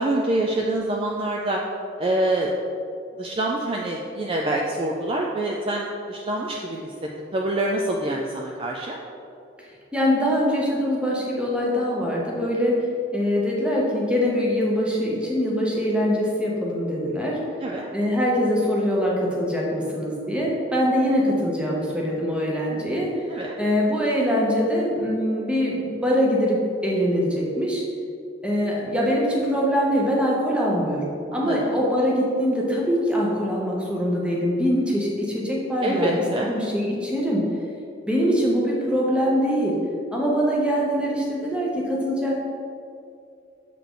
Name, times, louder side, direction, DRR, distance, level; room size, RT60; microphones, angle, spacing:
voice 1, 0.0-1.6 2.0-2.5 3.2-9.0 17.6-17.9 23.3-23.6 31.3-31.7 35.8-36.5, right 1 dB, 30° right, -1 dB, 0.3 m, -26 dB
voice 2, 9.9-12.8 13.1-17.4 17.9-23.1 23.6-27.8 28.4-37.4 38.1-39.8 40.1-42.4, equal, 5° right, -4 dB, 0.9 m, -23 dB
7.0 x 3.7 x 3.7 m, 2.5 s
head